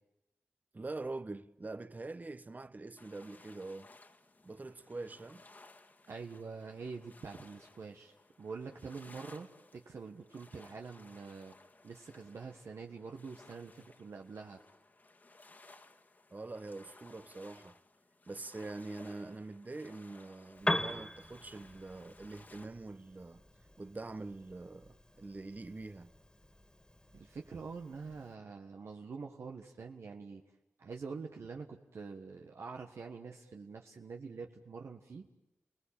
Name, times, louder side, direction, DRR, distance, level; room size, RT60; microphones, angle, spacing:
voice 1, 0.7-3.9 4.4-5.4 16.3-17.8 18.3-23.4 23.8-26.1, right 2 dB, 35° right, 1.0 m, -44 dB
sound 1, 3.0-22.7, left 2 dB, 40° left, 1.9 m, -59 dB
voice 2, 6.1-11.5 11.8-14.6 27.1-30.4 30.8-35.3, right 4 dB, 75° right, 1.5 m, -46 dB
Piano, 20.5-28.3, left 1 dB, 20° left, 2.3 m, -42 dB
30.0 x 19.0 x 8.8 m
cardioid pair, 55°, 5 cm